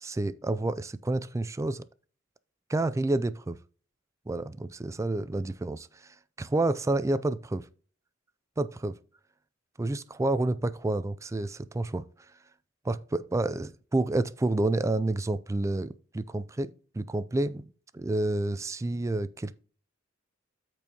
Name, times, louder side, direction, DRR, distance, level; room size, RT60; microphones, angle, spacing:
voice 1, 0.0-1.9 2.7-3.6 4.3-7.7 8.6-8.9 9.8-12.0 12.8-17.6 17.9-19.5, right 2 dB, 15° right, 0.3 m, -29 dB
13.5 x 4.5 x 2.9 m
head